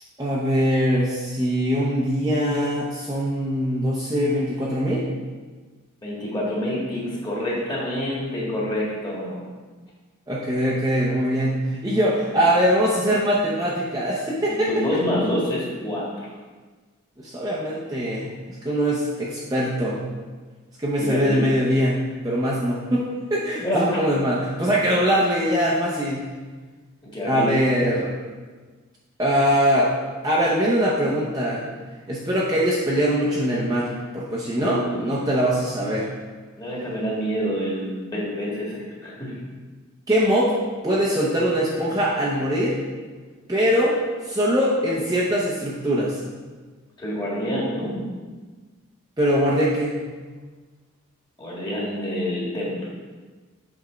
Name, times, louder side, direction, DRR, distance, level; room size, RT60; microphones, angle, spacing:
voice 1, 0.2-5.0 10.3-14.8 17.2-20.0 20.8-26.2 27.2-28.1 29.2-29.9 30.2-31.6 32.1-36.1 40.1-40.5 40.8-42.8 43.5-44.0 44.2-46.2 49.2-50.0, equal, 20° right, -6 dB, 0.7 m, -22 dB
voice 2, 6.0-9.4 14.5-16.3 21.0-21.4 23.6-24.0 27.1-27.6 34.6-35.1 36.6-39.4 47.0-48.0 51.4-52.9, equal, 20° left, -5 dB, 1.8 m, -27 dB
8.2 x 3.6 x 5.0 m, 1.4 s
head